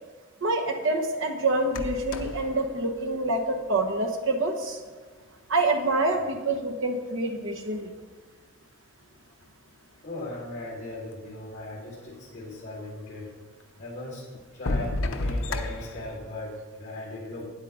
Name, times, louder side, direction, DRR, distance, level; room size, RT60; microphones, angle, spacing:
voice 1, 0.4-4.8 5.5-7.9, right 2 dB, 70° right, 3 dB, 1.1 m, -26 dB
sound 1, 1.6-4.0 5.0-5.1 5.7-6.8 7.5-8.3 9.1-9.2 9.4-9.5 10.1-10.2 10.5-11.3 12.9-13.0 13.6-13.7 14.3-16.2, left 2 dB, 80° left, 0.7 m, -33 dB
voice 2, 10.0-13.3 13.8-14.2 14.5-17.5, left 1 dB, 35° left, -9 dB, 2.5 m, -38 dB
9.2 x 8.2 x 3.9 m, 1.4 s
head